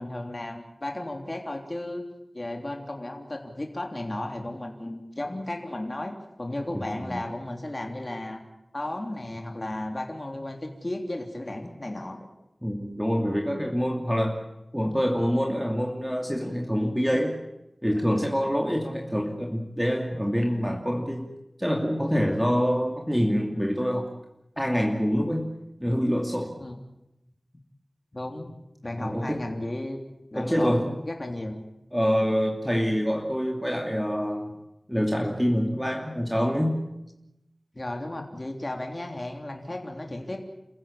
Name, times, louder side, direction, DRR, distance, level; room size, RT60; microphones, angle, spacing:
voice 1, 0.0-2.0 2.3-8.4 8.7-12.3 26.6-26.8 28.1-28.5 28.8-30.0 30.3-31.6 37.7-40.4, left 1 dB, 40° left, 3 dB, 3.4 m, -34 dB
voice 2, 6.7-7.2 12.6-14.4 14.7-17.4 17.8-21.3 21.6-24.1 24.6-25.5 25.8-26.6 29.0-29.4 30.3-31.0 31.9-34.5 34.9-36.8, equal, ahead, 2 dB, 2.6 m, -26 dB
29.0 x 15.0 x 8.6 m, 0.89 s
wide cardioid pair, 60°, 0 cm